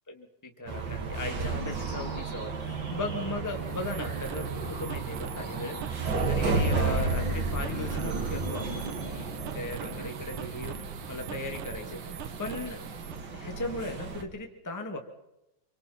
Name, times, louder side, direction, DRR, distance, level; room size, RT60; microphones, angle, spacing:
voice 1, 0.1-5.8 6.3-12.8 13.3-15.0, left 2 dB, 5° left, 4 dB, 1.5 m, -37 dB
sound 1, 0.7-14.2, right 4 dB, 40° right, 2.0 m, -33 dB
sound 2, 1.5-11.0, right 1 dB, 15° right, 2.2 m, -45 dB
sound 3, 3.5-13.2, right 10 dB, 70° right, 2.4 m, -44 dB
27.0 x 25.0 x 4.3 m, 0.89 s
omnidirectional pair, 3.9 m